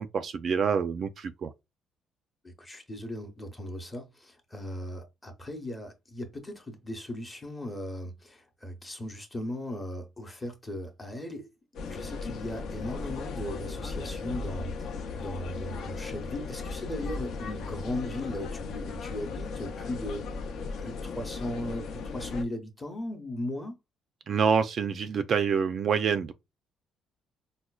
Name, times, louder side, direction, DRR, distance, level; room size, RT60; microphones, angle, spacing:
voice 1, 0.0-1.5 24.3-26.3, right 6 dB, 40° right, 0.3 m, -27 dB
voice 2, 2.4-11.5 11.9-20.2 20.8-23.8, left 1 dB, 15° left, 0.8 m, -37 dB
sound 1, 11.7-22.4, left 4 dB, 60° left, 0.6 m, -37 dB
4.9 x 2.1 x 2.3 m
cardioid pair, 170°, 0 cm